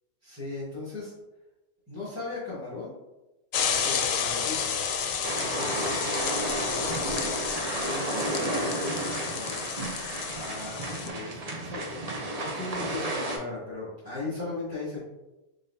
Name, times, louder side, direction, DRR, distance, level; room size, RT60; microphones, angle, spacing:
voice 1, 0.2-1.1 1.9-2.9 3.8-4.7 5.2-7.3 7.8-9.6 10.3-15.0, left 3 dB, 10° right, -12 dB, 1.3 m, -38 dB
sound 1, 3.5-11.1, left 7 dB, 80° left, 1.0 m, -31 dB
sound 2, 5.2-13.4, right 2 dB, 45° right, 0.5 m, -32 dB
4.0 x 3.7 x 2.6 m, 1.0 s
omnidirectional pair, 1.3 m